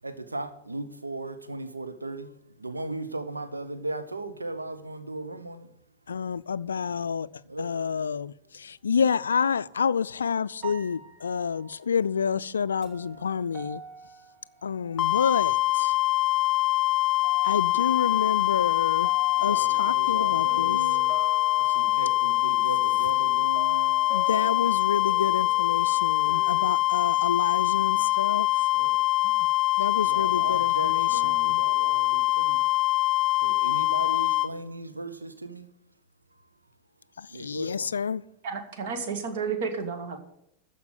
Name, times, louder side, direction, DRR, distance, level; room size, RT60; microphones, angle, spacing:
voice 1, 0.0-5.7 7.4-7.8 19.3-21.2 21.5-24.0 28.7-29.3 29.9-32.7 33.0-35.7 36.4-36.5 37.2-37.9, right 2 dB, 80° right, 1.0 m, -37 dB
voice 2, 6.1-7.3 7.6-13.8 14.6-16.0 17.4-19.1 19.4-20.8 24.1-28.7 29.2-29.5 29.8-31.6 37.2-38.2, left 6 dB, 70° left, 0.3 m, -29 dB
sound 1, 9.6-10.0 10.6-15.5 15.8-16.6 17.0-26.7, right 3 dB, 30° right, 1.7 m, -47 dB
sound 2, 15.0-34.5, left 17 dB, 35° left, 0.7 m, -24 dB
voice 3, 38.4-40.2, right 5 dB, 55° right, 1.9 m, -31 dB
14.0 x 5.2 x 8.0 m
figure-of-eight pair, 90°, 0 cm